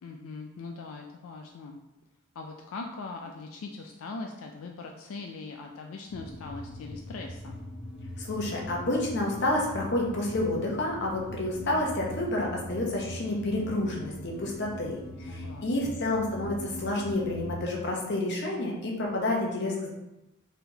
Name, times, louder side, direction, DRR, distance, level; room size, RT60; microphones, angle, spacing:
voice 1, 0.0-1.8 2.4-7.6 15.3-16.0, left 3 dB, 85° left, 2 dB, 0.4 m, -41 dB
sound 1, 6.1-17.6, equal, 35° left, 1.3 m, -41 dB
voice 2, 8.2-19.9, left 1 dB, 55° left, -1 dB, 0.9 m, -29 dB
4.4 x 3.5 x 2.8 m, 0.96 s
head